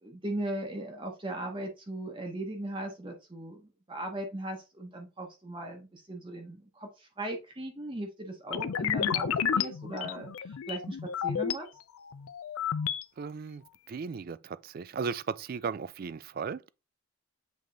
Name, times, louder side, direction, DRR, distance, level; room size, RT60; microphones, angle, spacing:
voice 1, 0.0-11.7, right 1 dB, 25° right, 0.8 m, -38 dB
sound 1, 8.5-11.6 12.0-13.0, left 8 dB, 80° left, 0.4 m, -31 dB
voice 2, 13.2-16.7, right 5 dB, 45° right, 0.3 m, -36 dB
7.5 x 3.4 x 3.8 m
head